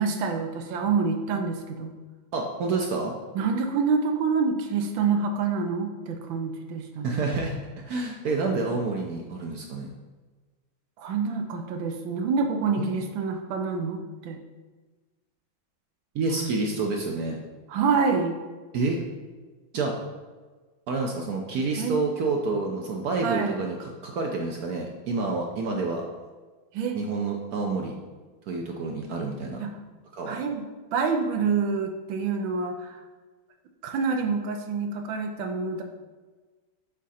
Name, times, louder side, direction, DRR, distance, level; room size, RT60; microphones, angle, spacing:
voice 1, 0.0-1.9 3.3-7.3 11.0-14.4 16.3-16.5 17.7-18.4 21.8-22.0 23.2-23.6 26.7-27.0 29.6-29.7 30.3-30.6 30.9-33.0 33.8-35.8, right 5 dB, 85° right, 5 dB, 1.4 m, -27 dB
voice 2, 2.3-3.2 7.0-9.9 12.8-12.9 16.1-17.4 18.7-19.0 19.7-19.9 20.9-26.0 26.9-27.9 28.5-29.6 30.1-30.4, right 3 dB, 65° right, 1 dB, 1.0 m, -28 dB
7.3 x 3.7 x 4.2 m, 1.3 s
omnidirectional pair, 2.1 m